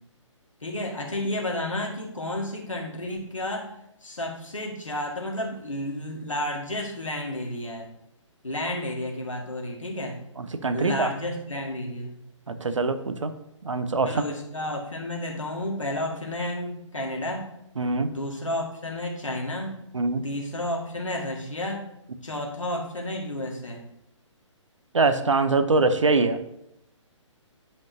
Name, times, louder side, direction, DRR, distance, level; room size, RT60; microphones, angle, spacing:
voice 1, 0.6-3.7 4.0-7.9 8.4-10.2 10.7-12.2 14.1-17.5 18.1-19.8 20.2-21.9 22.2-23.8, left 1 dB, 75° left, 0 dB, 1.8 m, -31 dB
voice 2, 10.4-11.1 12.5-13.3 13.6-14.2 17.8-18.1 19.9-20.2 24.9-26.4, right 3 dB, 70° right, 10 dB, 0.8 m, -23 dB
10.5 x 5.4 x 2.7 m, 0.81 s
figure-of-eight pair, 130°, 16 cm